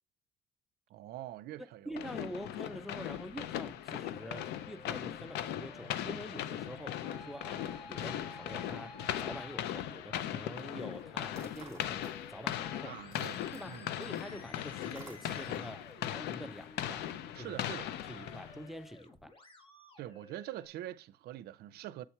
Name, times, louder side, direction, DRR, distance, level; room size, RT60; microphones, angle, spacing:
voice 1, 0.9-2.0 12.8-14.1 17.3-17.9 20.0-22.1, right 13 dB, 70° right, 0.5 m, -44 dB
voice 2, 1.6-13.0 13.5-17.1 17.4-17.6 18.1-19.3, equal, ahead, 0.4 m, -46 dB
sound 1, 2.0-18.7, left 11 dB, 75° left, 0.5 m, -39 dB
Musical instrument, 2.7-20.7, equal, 30° left, 1.5 m, -55 dB
sound 2, 11.3-12.5 12.8-15.8, right 3 dB, 15° right, 1.8 m, -54 dB
7.9 x 4.3 x 4.6 m
cardioid pair, 110°, 17 cm